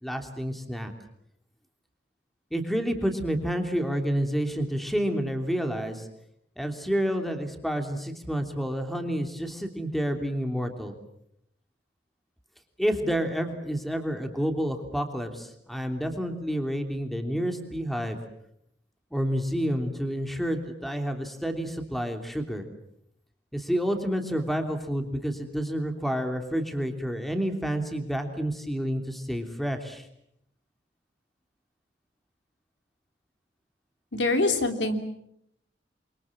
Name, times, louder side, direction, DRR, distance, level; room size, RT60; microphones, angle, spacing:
voice 1, 0.0-0.9 2.5-6.1 6.6-10.9 12.8-18.2 19.1-22.7 23.5-30.0, equal, ahead, 5 dB, 3.1 m, -29 dB
voice 2, 34.1-35.0, left 2 dB, 85° left, 7 dB, 3.2 m, -24 dB
29.5 x 24.0 x 7.4 m, 0.74 s
head